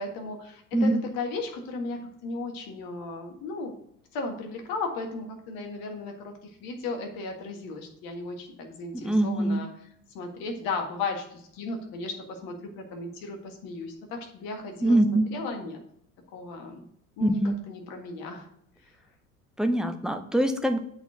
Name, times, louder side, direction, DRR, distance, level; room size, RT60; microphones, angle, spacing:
voice 1, 0.0-3.7 4.1-9.7 10.1-15.8 16.3-16.8 17.2-17.4 17.7-18.5, left 3 dB, 50° left, 3 dB, 1.8 m, -35 dB
voice 2, 8.9-9.6 14.8-15.2 17.2-17.6 19.6-20.8, right 1 dB, ahead, 6 dB, 0.4 m, -23 dB
7.8 x 4.5 x 6.3 m, 0.70 s
figure-of-eight pair, 70°, 46 cm